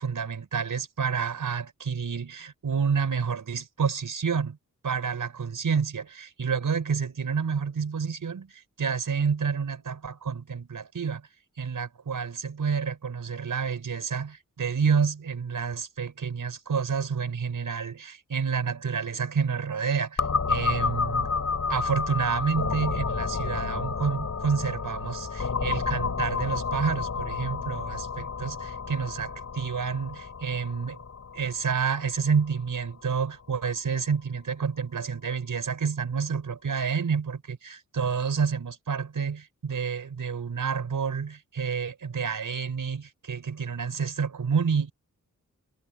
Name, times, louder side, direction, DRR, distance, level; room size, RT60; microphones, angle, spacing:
voice 1, 0.0-4.6 4.8-11.2 11.6-21.3 21.7-31.0 31.3-44.9, right 6 dB, 70° right, 4.8 m, -29 dB
sound 1, 20.2-33.7, left 5 dB, 50° left, 7.8 m, -31 dB
wide cardioid pair, 125°, 33 cm